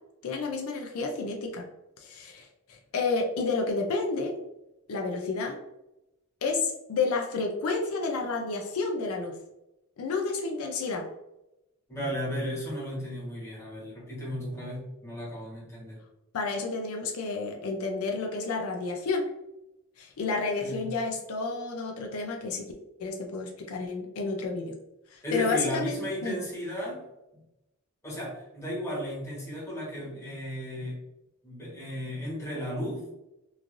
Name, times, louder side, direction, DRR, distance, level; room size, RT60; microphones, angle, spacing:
voice 1, 0.2-1.6 2.0-4.3 4.9-5.6 6.4-9.3 10.0-11.1 16.3-19.2 20.0-22.7 23.0-24.7 25.1-26.4, left 3 dB, 80° left, 2 dB, 0.4 m, -30 dB
voice 2, 11.9-16.0 20.6-20.8 25.2-27.0 28.0-31.0 31.4-33.1, equal, 15° left, -7 dB, 1.1 m, -34 dB
3.1 x 2.5 x 2.5 m, 0.93 s
head